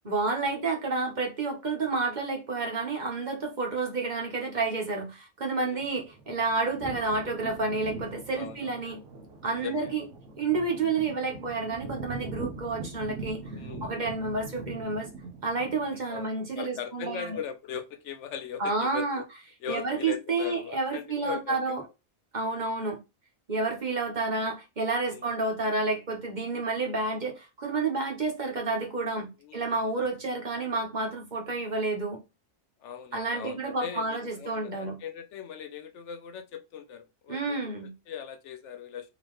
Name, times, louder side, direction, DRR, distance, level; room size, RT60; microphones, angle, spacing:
voice 1, 0.0-9.0 9.4-10.0 10.4-13.4 13.8-15.1 15.4-17.4 18.6-19.2 19.7-21.8 22.3-23.0 23.5-32.2 33.1-35.0 37.3-37.9, right 3 dB, 40° right, 1.2 m, -30 dB
sound 1, 5.8-16.2, right 3 dB, 80° right, 1.2 m, -42 dB
voice 2, 8.3-8.8 9.5-9.9 13.5-13.9 16.1-19.2 19.6-21.8 23.6-23.9 25.1-25.3 29.4-30.1 32.8-37.7 38.1-39.1, left 7 dB, 75° left, 0.9 m, -40 dB
3.9 x 2.9 x 3.1 m
omnidirectional pair, 1.2 m